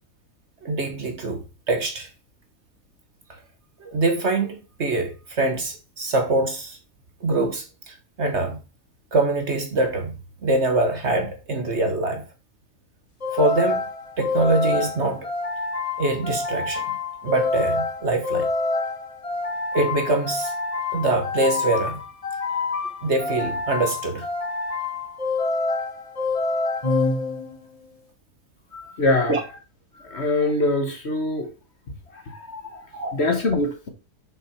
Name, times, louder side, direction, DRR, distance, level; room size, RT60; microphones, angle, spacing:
voice 1, 0.6-2.1 3.8-6.8 7.2-8.6 9.1-10.1 10.4-12.2 13.3-13.9 14.2-15.3 16.0-16.8 17.2-18.5 19.7-20.5 20.9-22.0 23.0-24.3 29.1-29.4 32.9-33.2, right 2 dB, 45° right, 1.5 m, -24 dB
sound 1, 13.2-27.7, left 3 dB, 25° left, 1.0 m, -27 dB
voice 2, 28.7-29.5 29.9-31.5 31.9-33.9, left 2 dB, 45° left, 1.4 m, -25 dB
7.1 x 6.1 x 4.4 m
omnidirectional pair, 1.7 m